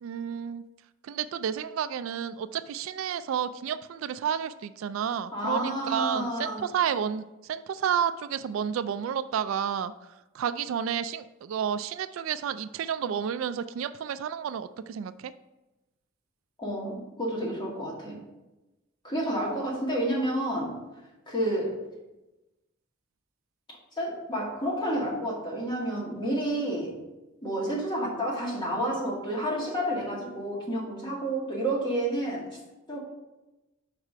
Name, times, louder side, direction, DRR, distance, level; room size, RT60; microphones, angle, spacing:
voice 1, 0.0-0.6 1.0-9.9 10.3-15.3, right 8 dB, 70° right, 13 dB, 0.3 m, -31 dB
voice 2, 5.3-6.6 16.6-18.2 19.0-20.8 21.3-21.8 24.0-27.0 27.4-32.5 32.9-33.0, right 1 dB, 25° left, -4 dB, 1.9 m, -30 dB
4.9 x 4.8 x 5.4 m, 1.0 s
head